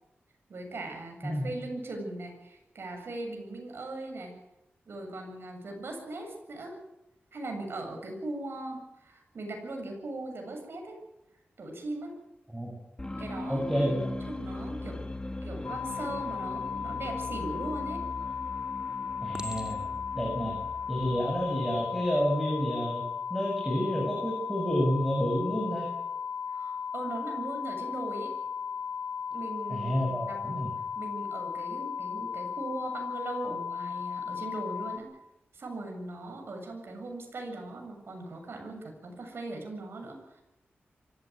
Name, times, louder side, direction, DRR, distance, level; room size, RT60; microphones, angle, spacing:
voice 1, 0.5-4.4 4.9-6.8 7.3-11.0 11.6-12.2 13.2-13.9 14.2-15.1 15.4-18.0 26.5-28.4 29.3-35.2 35.5-40.4, right 2 dB, 70° right, 3 dB, 7.5 m, -39 dB
sound 1, 13.0-22.6, left 2 dB, 20° left, 2.1 m, -40 dB
voice 2, 13.5-14.1 19.2-19.9 20.1-20.6 20.9-23.0 23.3-25.9 29.7-30.7, equal, 5° right, -1 dB, 7.3 m, -29 dB
sound 2, 15.6-35.0, left 7 dB, 80° left, 3.8 m, -36 dB
Chink clink, 17.9-18.4 19.3-20.1 20.9-21.1, right 1 dB, 20° right, 2.9 m, -44 dB
25.0 x 16.0 x 9.5 m, 0.91 s
wide cardioid pair, 80°, 4 cm